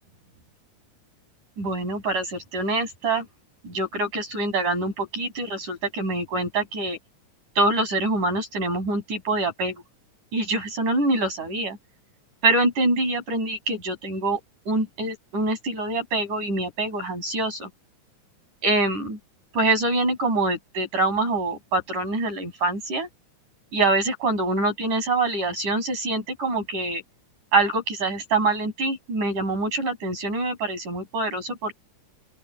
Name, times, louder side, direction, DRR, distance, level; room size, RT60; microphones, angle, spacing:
voice 1, 1.6-3.3 3.6-7.0 7.6-9.8 10.3-11.8 12.4-14.4 14.7-17.7 18.6-19.2 19.5-23.1 23.7-27.0 27.5-31.7, right 2 dB, 80° right, 9.2 m, -25 dB
open air
omnidirectional pair, 3.6 m